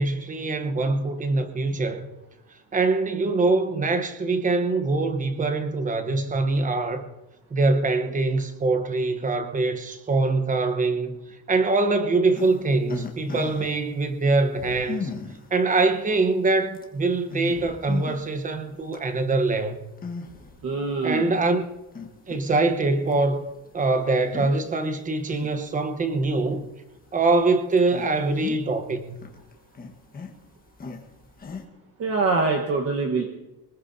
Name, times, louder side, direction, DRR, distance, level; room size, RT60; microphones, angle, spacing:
voice 1, 0.0-2.1 2.7-7.1 7.5-15.1 15.5-19.8 21.0-21.7 22.3-23.4 23.7-26.7 27.1-29.2, right 3 dB, 20° right, 8 dB, 1.0 m, -23 dB
sound 1, 12.3-13.8 14.5-15.5 16.2-16.3 16.7-16.8 17.3-18.3 18.7-19.0 20.0-20.6 21.1-21.2 21.9-22.8 23.1-23.2 24.2-24.5 24.9-25.8 26.5-26.6 27.2-27.3 27.7-28.9 29.1-31.6, left 4 dB, 20° left, 1.4 m, -36 dB
voice 2, 20.6-21.4 32.0-33.2, right 3 dB, 40° right, 2 dB, 1.3 m, -24 dB
23.5 x 20.5 x 2.7 m, 1.0 s
cardioid pair, 180°, 39 cm